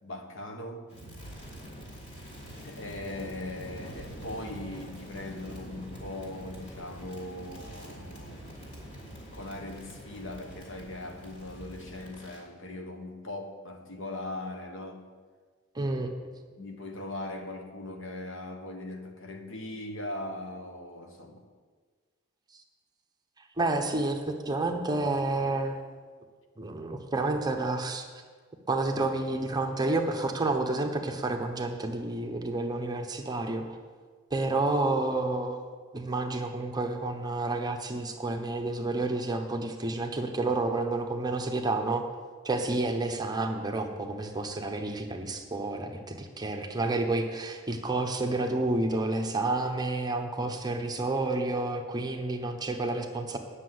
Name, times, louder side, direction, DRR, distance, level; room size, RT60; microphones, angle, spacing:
voice 1, 0.0-0.9 2.6-8.6 9.3-15.1 16.6-21.4, left 1 dB, 65° left, 4 dB, 1.3 m, -40 dB
Crackle, 0.9-12.5, equal, 35° left, 3.3 m, -45 dB
voice 2, 15.7-16.1 23.6-25.8 26.6-28.1 28.7-33.6 34.3-35.6 35.9-42.0 42.4-53.4, right 2 dB, 20° right, 4 dB, 0.9 m, -30 dB
9.9 x 6.4 x 7.8 m, 1.5 s
head